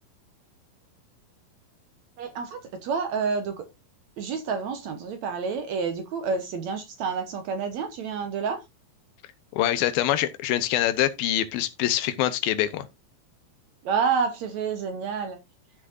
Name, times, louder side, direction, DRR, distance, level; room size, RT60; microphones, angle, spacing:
voice 1, 2.2-3.7 4.2-8.6 13.8-15.4, right 5 dB, 65° right, 1.9 m, -29 dB
voice 2, 9.5-12.9, left 13 dB, 90° left, 2.7 m, -25 dB
14.0 x 6.2 x 2.6 m
omnidirectional pair, 4.2 m